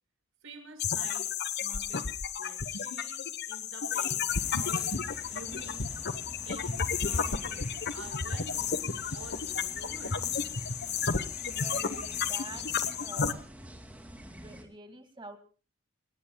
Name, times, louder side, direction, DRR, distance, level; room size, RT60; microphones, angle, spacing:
voice 1, 0.4-1.2 1.6-2.1 2.4-4.2 4.5-4.9 5.3-5.8 6.4-6.7 7.0-8.8 9.1-10.2, right 2 dB, 80° right, 5 dB, 5.9 m, -48 dB
sound 1, 0.8-13.3, left 6 dB, 55° left, 1.1 m, -32 dB
sound 2, 4.3-14.6, equal, 10° right, 2.5 m, -48 dB
voice 2, 11.4-12.7 13.0-13.5 14.3-15.4, right 2 dB, 25° right, 6 dB, 2.1 m, -46 dB
28.5 x 18.0 x 2.3 m, 0.35 s
head